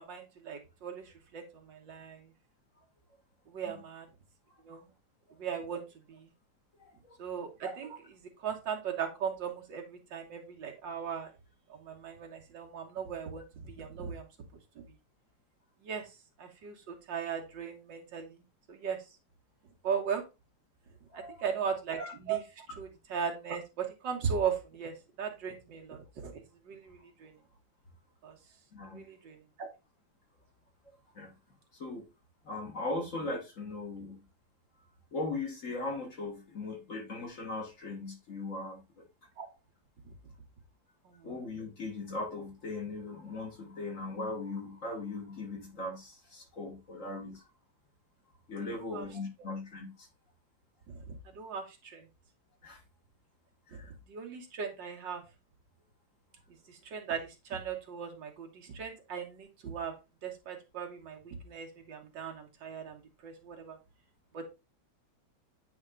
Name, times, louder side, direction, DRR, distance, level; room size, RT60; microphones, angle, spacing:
voice 1, 0.0-2.3 3.5-4.1 4.7-4.9 5.4-6.3 7.2-11.3 11.7-14.3 15.8-16.1 16.4-18.4 18.7-19.0 19.8-20.2 21.1-27.3 28.2-28.4 28.9-29.7 39.4-39.5 40.1-40.2 41.1-41.4 48.8-49.0 50.9-52.1 53.7-53.8 54.1-55.2 56.7-59.9 60.2-63.8 64.3-64.5, right 7 dB, 80° right, 2.1 m, -38 dB
voice 2, 6.8-7.2 21.1-21.6 28.7-29.0 31.1-31.3 31.8-32.0 32.4-34.2 35.1-39.0 41.2-47.4 48.5-50.1 52.6-52.8 53.7-53.9, left 2 dB, 45° left, 2.1 m, -39 dB
8.8 x 3.6 x 3.7 m
omnidirectional pair, 2.0 m